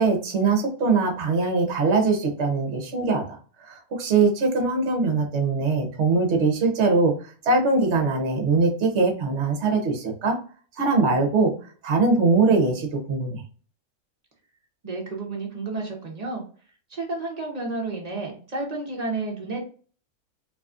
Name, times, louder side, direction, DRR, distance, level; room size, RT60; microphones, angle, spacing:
voice 1, 0.0-7.1 7.4-10.4 10.8-11.5 11.8-13.4, right 3 dB, 55° right, 3 dB, 1.1 m, -22 dB
voice 2, 14.8-16.4 16.9-19.6, right 3 dB, 30° right, 0 dB, 0.9 m, -31 dB
4.0 x 2.7 x 2.4 m, 0.40 s
omnidirectional pair, 1.5 m